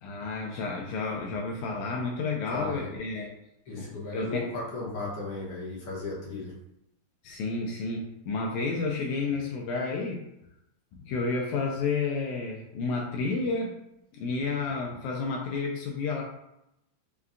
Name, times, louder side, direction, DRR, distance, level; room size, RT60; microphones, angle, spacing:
voice 1, 0.0-3.3 3.8-3.9 4.1-4.4 7.2-10.2 11.0-13.8 14.1-16.2, left 4 dB, 85° left, 0 dB, 2.0 m, -31 dB
voice 2, 2.5-2.9 3.2-3.3 3.7-6.5, left 3 dB, 60° left, -5 dB, 1.6 m, -35 dB
5.5 x 2.3 x 3.6 m, 0.84 s
omnidirectional pair, 3.3 m